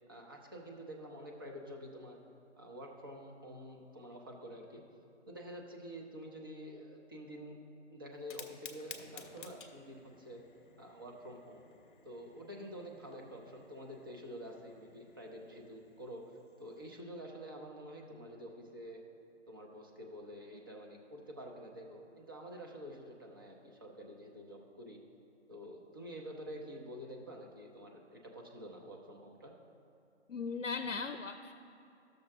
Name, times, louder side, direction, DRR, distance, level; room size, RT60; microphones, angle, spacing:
voice 1, 0.1-2.2 2.6-4.8 5.3-7.6 7.9-10.4 10.8-11.6 12.0-16.2 16.6-19.0 19.5-25.0 25.5-29.5, equal, 20° right, 0 dB, 0.5 m, -48 dB
Fire, 8.1-17.0, left 5 dB, 45° left, 0.8 m, -55 dB
voice 2, 30.3-31.5, left 4 dB, 90° left, 8 dB, 0.6 m, -38 dB
12.5 x 6.5 x 3.4 m, 2.7 s
figure-of-eight pair, 145°, 36 cm